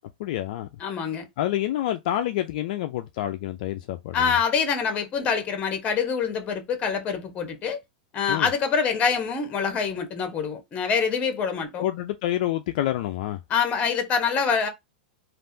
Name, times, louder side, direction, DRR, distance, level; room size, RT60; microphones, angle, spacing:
voice 1, 0.2-0.7 1.4-4.4 8.3-8.5 11.8-13.4, left 13 dB, 60° left, 0.4 m, -28 dB
voice 2, 0.8-1.3 4.1-7.8 8.1-11.8 13.5-14.7, left 6 dB, 30° left, 1.1 m, -25 dB
3.4 x 2.5 x 2.7 m
hypercardioid pair, 115°, 5 cm